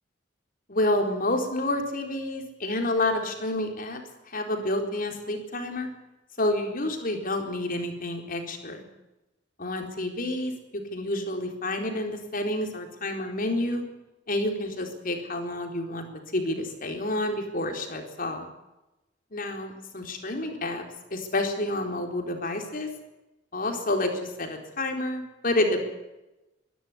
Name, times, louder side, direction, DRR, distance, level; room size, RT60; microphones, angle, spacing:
voice 1, 0.7-4.0 4.3-5.9 6.4-8.8 9.6-13.8 14.3-16.1 16.3-18.5 19.3-20.8 21.1-22.9 23.5-25.9, left 1 dB, 50° left, 4 dB, 4.1 m, -29 dB
23.5 x 12.5 x 9.8 m, 0.98 s
head